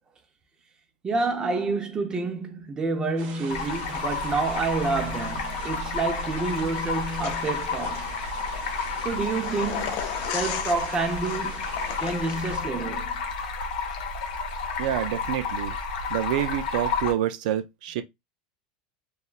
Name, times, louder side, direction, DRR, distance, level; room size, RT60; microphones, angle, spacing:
voice 1, 1.0-8.2 9.0-11.6 12.0-13.2, right 3 dB, 15° right, 0.6 m, -28 dB
sound 1, 3.2-12.6, right 6 dB, 50° right, 1.0 m, -43 dB
Stream, 3.5-17.1, left 4 dB, 75° left, 0.8 m, -31 dB
sound 2, 7.2-12.7, left 9 dB, 50° left, 0.4 m, -37 dB
voice 2, 14.8-15.7 16.1-18.0, right 11 dB, 65° right, 0.4 m, -27 dB
2.8 x 2.3 x 2.3 m
supercardioid pair, 145°, 5 cm